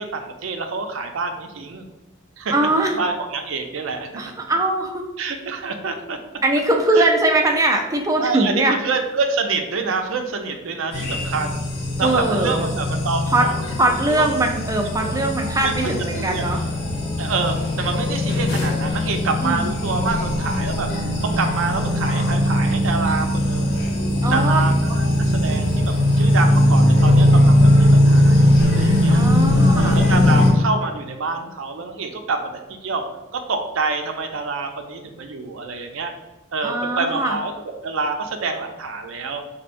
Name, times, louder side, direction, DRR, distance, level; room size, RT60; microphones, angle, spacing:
voice 1, 0.0-1.9 2.4-2.5 2.9-4.2 5.2-6.2 6.9-7.1 8.2-11.6 12.0-13.6 15.1-15.3 15.6-16.4 17.2-20.9 21.2-23.8 24.3-29.2 29.7-33.0 33.3-36.1 36.5-37.5 37.8-39.4, right 4 dB, 75° right, 5 dB, 0.5 m, -27 dB
voice 2, 2.5-3.0 4.2-5.0 6.4-8.8 12.0-12.7 13.3-13.5 13.8-16.6 19.4-19.7 24.2-24.6 24.9-25.0 29.1-30.0 36.6-37.4, right 2 dB, 15° right, 3 dB, 0.3 m, -21 dB
sound 1, 10.9-30.5, left 1 dB, 55° left, 0.8 m, -19 dB
4.3 x 2.7 x 2.5 m, 1.1 s
head